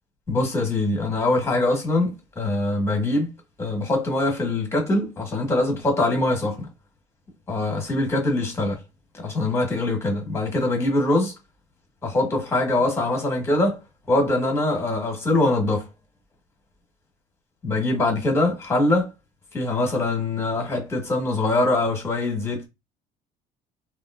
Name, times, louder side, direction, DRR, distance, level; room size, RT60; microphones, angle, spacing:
voice 1, 0.3-3.3 3.6-6.7 7.5-8.8 9.2-11.3 12.0-13.8 14.1-15.9 17.6-19.1 19.5-22.7, left 2 dB, 15° left, 1.5 m, -23 dB
3.5 x 2.5 x 2.5 m
cardioid pair, 150°, 16 cm